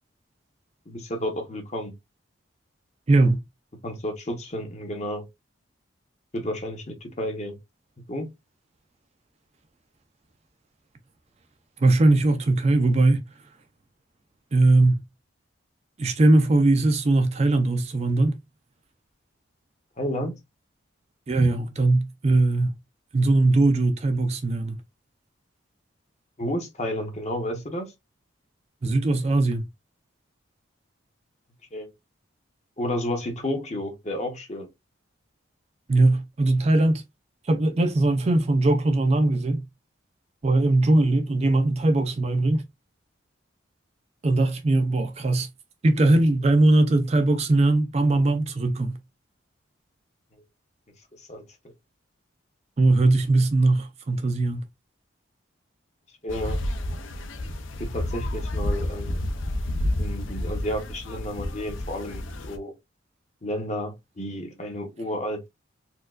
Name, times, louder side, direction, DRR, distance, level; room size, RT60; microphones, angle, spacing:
voice 1, 0.9-1.9 3.8-5.3 6.3-7.6 8.1-8.3 20.0-20.4 26.4-27.9 31.7-31.9 32.8-34.7 51.2-51.7 56.2-56.6 57.8-59.2 60.0-62.7 63.4-65.5, left 1 dB, 35° left, 0.8 m, -31 dB
voice 2, 3.1-3.4 11.8-13.3 14.5-15.0 16.0-18.4 21.3-22.8 23.1-24.8 28.8-29.6 35.9-37.0 37.5-39.7 40.4-42.6 44.2-45.5 45.8-49.0 52.8-54.6, right 2 dB, 30° right, 0.4 m, -20 dB
sound 1, 56.3-62.6, left 1 dB, 75° left, 0.5 m, -30 dB
4.3 x 2.3 x 2.4 m
head